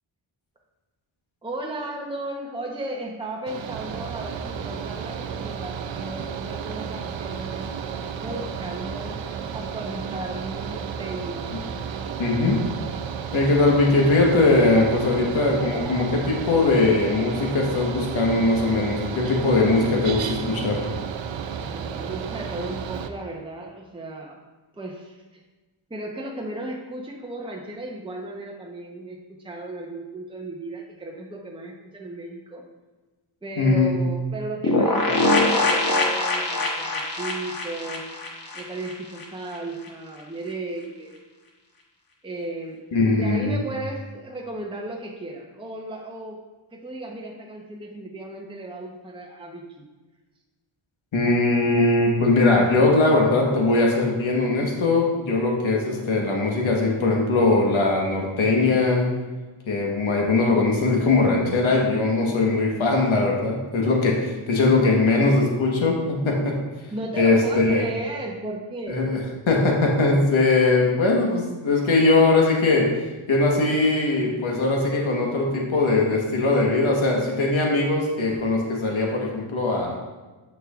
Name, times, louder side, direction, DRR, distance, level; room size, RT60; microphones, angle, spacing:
voice 1, 1.4-9.2 9.5-11.5 21.6-24.4 24.7-25.2 25.9-32.6 33.4-38.1 38.5-41.2 42.2-42.8 43.1-46.4 46.7-49.9 66.9-69.0, right 2 dB, 10° right, -1 dB, 0.8 m, -35 dB
Mechanical fan, 3.5-23.1, right 7 dB, 65° right, 0.6 m, -32 dB
voice 2, 12.2-12.6 13.3-20.8 33.6-33.9 42.9-43.6 51.1-59.1 59.7-66.6 67.2-67.8 68.9-72.9 73.3-80.0, left 3 dB, 75° left, -1 dB, 1.4 m, -20 dB
sound 1, 34.6-39.2 39.5-39.6 39.8-39.9, left 2 dB, 45° left, 1.2 m, -23 dB
7.6 x 6.4 x 2.4 m, 1.2 s
wide cardioid pair, 80°, 48 cm